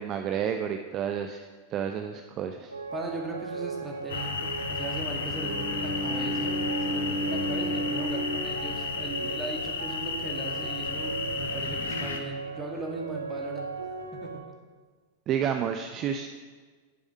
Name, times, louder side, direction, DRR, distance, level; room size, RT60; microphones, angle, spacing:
voice 1, 0.0-2.7 15.3-16.3, right 8 dB, 35° right, 7 dB, 0.5 m, -30 dB
sound 1, 2.7-14.4, right 4 dB, 85° right, 0.9 m, -38 dB
voice 2, 2.9-6.6 6.9-13.7 14.2-14.5, right 2 dB, 10° right, 0 dB, 2.0 m, -38 dB
sound 2, 4.1-12.2, left 5 dB, 65° left, 1.0 m, -33 dB
Bowed string instrument, 5.2-9.3, equal, 30° left, 3.6 m, -33 dB
10.5 x 7.1 x 5.3 m, 1.5 s
figure-of-eight pair, 90°, 0 cm